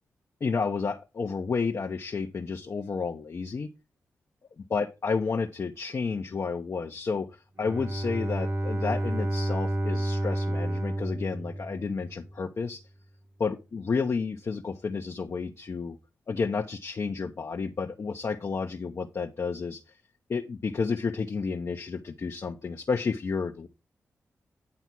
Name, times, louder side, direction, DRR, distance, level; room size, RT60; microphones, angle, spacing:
voice 1, 0.4-3.7 4.7-7.3 7.6-12.8 13.4-16.0 16.3-19.8 20.3-23.7, left 5 dB, 55° left, 1.0 m, -31 dB
Bowed string instrument, 7.6-12.4, right 1 dB, 50° right, 1.8 m, -30 dB
9.8 x 3.5 x 6.1 m
cardioid pair, 50°, 6 cm